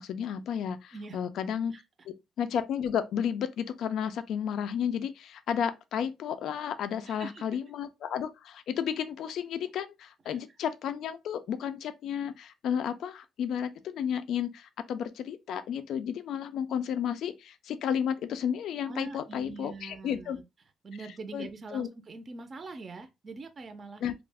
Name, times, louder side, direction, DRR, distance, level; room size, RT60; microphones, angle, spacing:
voice 1, 0.0-1.7 2.1-20.4 21.3-21.9 24.0-24.1, left 8 dB, 75° left, 0.3 m, -32 dB
voice 2, 7.0-7.5 10.3-10.4 18.9-20.4 20.8-24.0, right 3 dB, 40° right, 0.4 m, -43 dB
2.3 x 2.1 x 3.3 m
cardioid pair, 90°, 0 cm